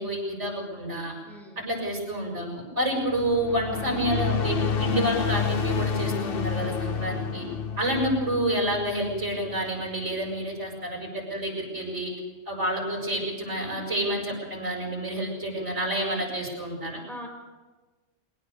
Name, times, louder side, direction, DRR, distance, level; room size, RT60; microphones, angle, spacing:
voice 1, 0.0-1.1 1.6-7.5 7.8-12.1 12.5-17.0, right 1 dB, 65° right, 0 dB, 7.3 m, -29 dB
voice 2, 1.3-1.7 17.1-17.3, equal, ahead, 0 dB, 5.8 m, -42 dB
sound 1, 3.1-9.7, left 6 dB, 55° left, 1.0 m, -29 dB
22.5 x 19.0 x 7.0 m, 1.2 s
omnidirectional pair, 1.3 m